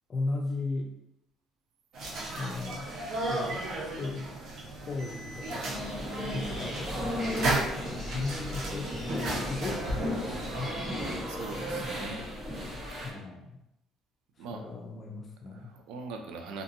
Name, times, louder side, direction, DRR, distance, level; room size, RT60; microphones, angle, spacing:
voice 1, 0.1-0.9 2.4-4.3 4.8-5.7 6.3-7.2 7.7-8.9 9.4-10.8 11.1-11.5 13.0-13.6 14.5-15.7, left 3 dB, 35° left, 0 dB, 0.4 m, -37 dB
sound 1, 1.9-10.7, right 2 dB, 60° right, 0.8 m, -35 dB
sound 2, 5.5-11.1, left 1 dB, 5° right, 1.2 m, -44 dB
sound 3, 5.6-13.1, equal, 40° right, 1.0 m, -35 dB
voice 2, 6.4-6.7 11.3-12.3 14.4-14.6 15.5-16.6, right 3 dB, 85° right, 4 dB, 0.4 m, -41 dB
2.7 x 2.5 x 2.6 m, 0.83 s
cardioid pair, 110°, 0 cm